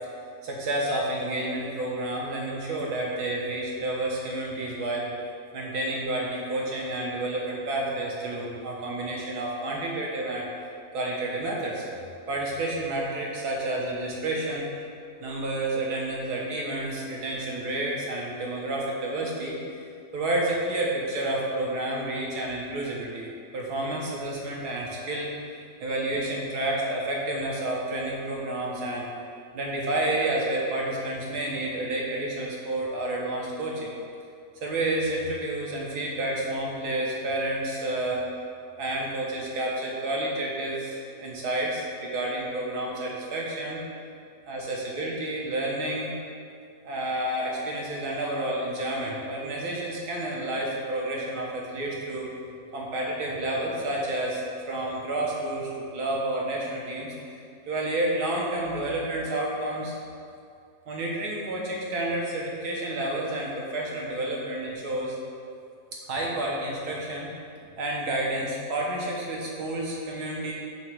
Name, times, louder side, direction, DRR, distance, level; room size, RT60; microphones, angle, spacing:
voice 1, 0.4-5.1 5.5-10.5 10.9-11.8 12.3-14.7 15.2-19.8 20.1-25.3 25.8-29.0 29.5-34.0 34.6-38.2 38.8-43.8 44.5-46.1 46.8-52.3 52.7-57.1 57.7-59.9 60.9-65.2 65.9-67.3 67.6-70.5, right 1 dB, 70° right, -3 dB, 1.6 m, -30 dB
7.7 x 2.9 x 6.1 m, 2.4 s
omnidirectional pair, 1.8 m